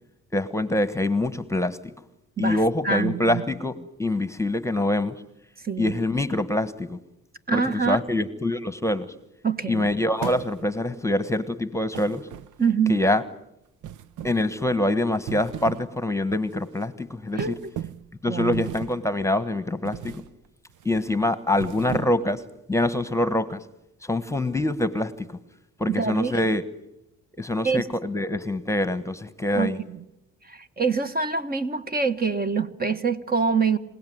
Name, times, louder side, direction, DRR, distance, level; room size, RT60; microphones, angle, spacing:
voice 1, 0.3-1.8 2.4-5.2 5.8-7.0 7.5-9.1 9.7-12.3 12.9-13.2 14.2-17.6 18.2-20.2 20.8-22.4 22.7-23.6 24.0-25.4 25.8-26.6 27.4-29.8, left 1 dB, 10° left, 13 dB, 1.3 m, -25 dB
voice 2, 2.4-3.4 5.6-5.9 7.5-8.0 9.4-9.9 12.6-13.0 17.4-17.7 18.3-18.6 25.9-26.4 27.6-27.9 29.5-30.0 30.5-33.8, right 5 dB, 30° right, 9 dB, 1.5 m, -25 dB
sound 1, 10.2-10.9 11.9-12.8 13.8-14.5 15.1-15.9 16.3-16.5 17.4-18.1 18.5-19.1 19.8-20.3 20.7-21.0 21.5-22.4, right 10 dB, 80° right, 0.8 m, -36 dB
27.0 x 17.5 x 9.5 m, 0.86 s
cardioid pair, 90°, 30 cm